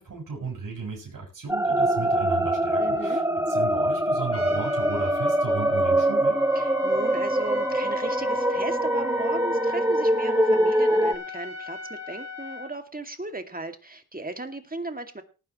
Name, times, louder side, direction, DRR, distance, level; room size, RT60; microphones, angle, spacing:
voice 1, 0.0-3.2 3.5-6.4, right 4 dB, 80° right, -2 dB, 6.7 m, -34 dB
sound 1, 1.5-11.2, right 1 dB, 10° right, 1.3 m, -23 dB
voice 2, 2.8-3.2 6.5-15.2, right 2 dB, 25° right, 6 dB, 2.4 m, -36 dB
Trumpet, 4.3-12.7, left 5 dB, 50° left, 3.0 m, -38 dB
18.5 x 9.9 x 3.1 m, 0.33 s
cardioid pair, 50°, 32 cm